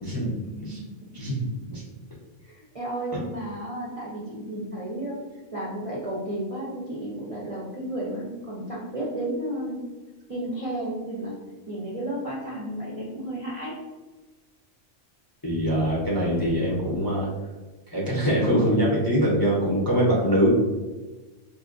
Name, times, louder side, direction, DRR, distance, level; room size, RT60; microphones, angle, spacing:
voice 1, 0.0-0.8 1.1-1.4 1.7-1.8 3.1-3.2 15.4-17.3 17.9-20.5, equal, 25° left, -5 dB, 0.6 m, -23 dB
voice 2, 0.5-0.9 2.4-5.2 5.5-9.8 10.3-11.4 11.7-13.7, right 1 dB, 35° right, -6 dB, 0.6 m, -32 dB
4.3 x 2.6 x 2.5 m, 1.2 s
omnidirectional pair, 1.3 m